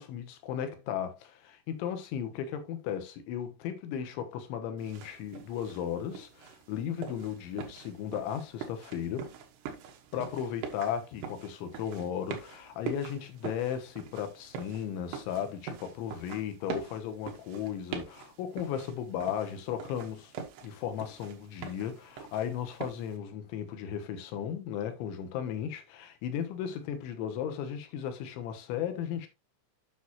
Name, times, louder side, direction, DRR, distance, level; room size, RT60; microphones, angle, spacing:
voice 1, 0.0-9.3 10.1-20.3 20.6-29.3, left 9 dB, 90° left, 3.6 m, -35 dB
sound 1, 4.8-23.2, right 7 dB, 75° right, 3.3 m, -44 dB
9.3 x 6.4 x 2.9 m
omnidirectional pair, 5.2 m